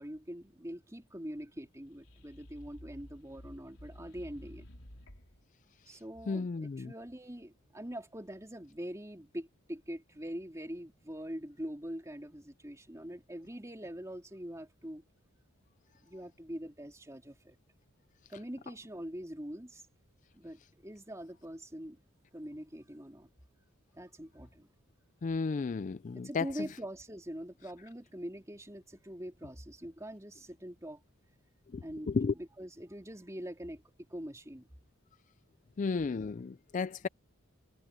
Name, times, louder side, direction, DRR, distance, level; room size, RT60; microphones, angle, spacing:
voice 1, 0.0-4.7 5.9-15.0 16.0-17.6 18.3-19.8 20.3-22.0 22.3-23.3 24.0-24.7 26.1-31.0 31.8-33.8 34.1-34.7, equal, 15° right, 3.5 m, -43 dB
sound 1, 1.8-5.4, equal, 75° left, 4.3 m, -52 dB
voice 2, 6.3-6.9 25.2-26.4 32.1-32.3 35.8-37.1, left 4 dB, 35° left, 0.3 m, -33 dB
head